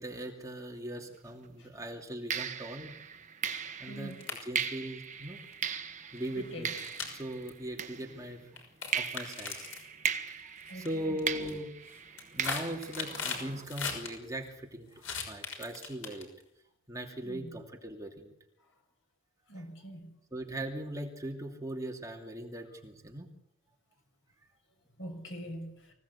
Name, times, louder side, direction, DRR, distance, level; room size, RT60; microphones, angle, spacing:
voice 1, 0.0-2.9 3.8-4.1 4.4-5.4 6.1-6.7 7.0-8.4 8.9-9.7 10.3-11.7 12.3-14.9 15.3-16.3 16.9-18.3 19.6-19.7 20.3-23.3, right 1 dB, 15° right, 2.7 m, -39 dB
sound 1, 1.1-1.4 2.3-8.5 8.9-13.6, right 6 dB, 40° right, 1.4 m, -38 dB
voice 2, 3.9-4.2 6.5-6.7 10.7-11.2 17.2-17.5 19.5-20.1 25.0-25.7, equal, 70° left, 6.4 m, -43 dB
sound 2, 4.1-4.8 5.5-5.7 6.7-7.5 8.6-9.8 10.6-10.9 11.2-11.5 12.0-14.1 15.0-16.4, left 5 dB, 90° left, 6.1 m, -38 dB
25.0 x 17.0 x 8.5 m
head